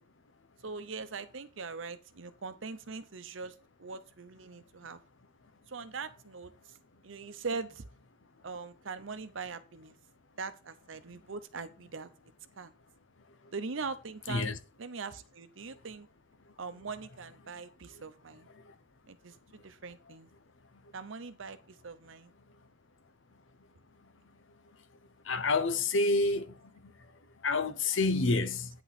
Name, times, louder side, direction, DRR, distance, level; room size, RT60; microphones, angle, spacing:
voice 1, 0.6-5.0 5.7-6.8 7.0-7.9 8.4-10.0 10.4-12.1 12.6-12.7 13.5-16.1 16.6-18.5 19.1-20.3 20.9-22.3, right 4 dB, 90° right, 0.8 m, -41 dB
voice 2, 25.3-26.5 27.4-28.7, left 3 dB, 80° left, 0.9 m, -28 dB
9.3 x 5.9 x 4.2 m
head